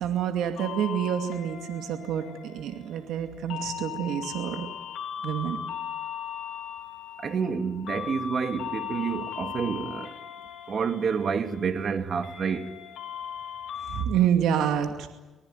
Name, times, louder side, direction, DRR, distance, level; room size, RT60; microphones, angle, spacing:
voice 1, 0.0-4.7 5.2-5.6 13.9-15.1, right 9 dB, 85° right, 2.4 m, -28 dB
sound 1, 0.6-14.1, left 9 dB, 80° left, 3.4 m, -38 dB
voice 2, 7.2-10.2 10.7-12.8, right 6 dB, 50° right, 2.4 m, -29 dB
26.0 x 20.0 x 9.3 m
cardioid pair, 90°, 0 cm